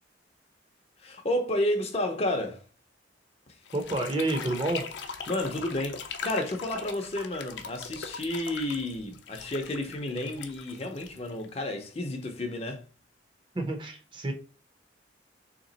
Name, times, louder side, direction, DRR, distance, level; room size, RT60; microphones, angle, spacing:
voice 1, 1.0-2.6 5.3-12.8, left 1 dB, 35° left, 0.6 m, -31 dB
sound 1, 3.7-11.7, left 5 dB, 75° left, 0.5 m, -40 dB
voice 2, 3.7-4.8 13.5-14.3, right 2 dB, 25° right, 0.6 m, -29 dB
3.4 x 2.9 x 3.9 m
head